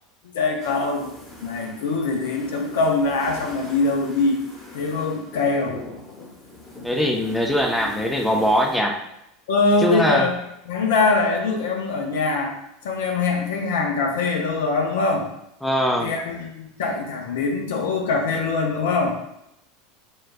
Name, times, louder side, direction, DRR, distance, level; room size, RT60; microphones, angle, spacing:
voice 1, 0.3-1.1 1.4-4.4 4.7-5.8 9.5-10.3 10.7-12.6 12.8-15.3 16.0-19.1, left 3 dB, 65° left, 2 dB, 0.6 m, -23 dB
sound 1, 0.6-8.8, left 2 dB, 20° left, 1.1 m, -42 dB
voice 2, 6.8-9.0 9.8-10.3 15.6-16.1, equal, 5° left, 2 dB, 0.5 m, -21 dB
4.6 x 2.4 x 2.2 m, 0.82 s
figure-of-eight pair, 80°, 0 cm